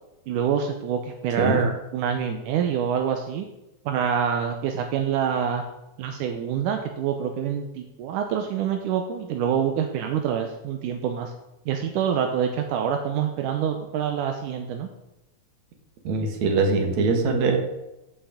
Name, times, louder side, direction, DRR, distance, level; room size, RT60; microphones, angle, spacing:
voice 1, 0.3-3.5 3.9-5.6 6.0-11.3 11.7-14.9, right 8 dB, 85° right, 5 dB, 2.4 m, -26 dB
voice 2, 16.1-17.6, right 3 dB, 65° right, 4 dB, 2.8 m, -22 dB
15.5 x 5.7 x 5.1 m, 0.96 s
omnidirectional pair, 3.6 m